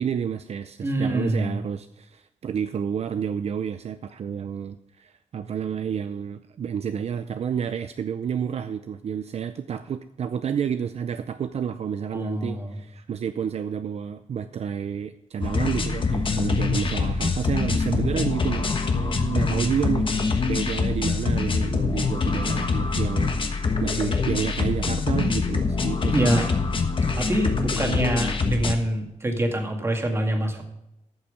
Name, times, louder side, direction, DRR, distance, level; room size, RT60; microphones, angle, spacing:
voice 1, 0.0-26.4, right 7 dB, 60° right, 10 dB, 0.5 m, -30 dB
voice 2, 0.8-1.6 12.1-12.8 19.1-19.7 24.0-24.3 26.1-26.4 27.2-30.6, right 1 dB, 20° right, 3 dB, 2.0 m, -25 dB
sound 1, 15.4-28.7, left 4 dB, 45° left, 1.3 m, -25 dB
14.0 x 7.4 x 5.0 m, 0.86 s
wide cardioid pair, 165°, 12 cm